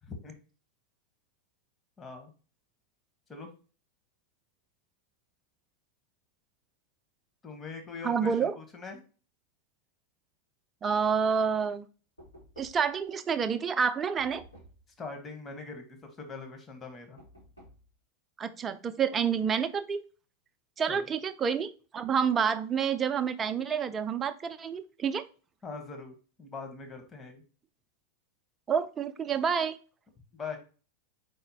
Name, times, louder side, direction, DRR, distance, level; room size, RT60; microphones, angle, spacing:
voice 1, 2.0-2.3 3.3-3.5 7.4-9.0 15.0-15.8 16.2-17.2 20.9-21.1 25.6-27.4 30.3-30.6, left 4 dB, 25° left, 4 dB, 1.2 m, -42 dB
voice 2, 8.0-8.5 10.8-11.9 12.6-14.4 18.4-20.0 20.8-25.2 28.7-29.8, right 6 dB, 25° right, 10 dB, 0.5 m, -28 dB
Knock, 12.2-13.0 14.2-14.9 17.2-17.9, equal, 90° left, 2.5 m, -53 dB
4.2 x 4.0 x 2.7 m, 0.36 s
figure-of-eight pair, 90°, 0 cm